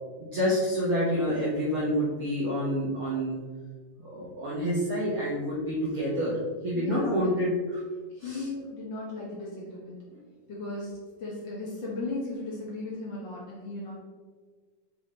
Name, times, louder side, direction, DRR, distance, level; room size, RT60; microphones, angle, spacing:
voice 1, 0.2-3.4 4.0-6.4 6.6-7.8 8.2-8.4, equal, 60° right, -6 dB, 1.4 m, -28 dB
voice 2, 6.7-7.3 8.1-10.0 10.5-10.9 11.2-14.0, left 2 dB, 70° left, -5 dB, 1.1 m, -36 dB
8.3 x 4.0 x 3.6 m, 1.5 s
omnidirectional pair, 3.8 m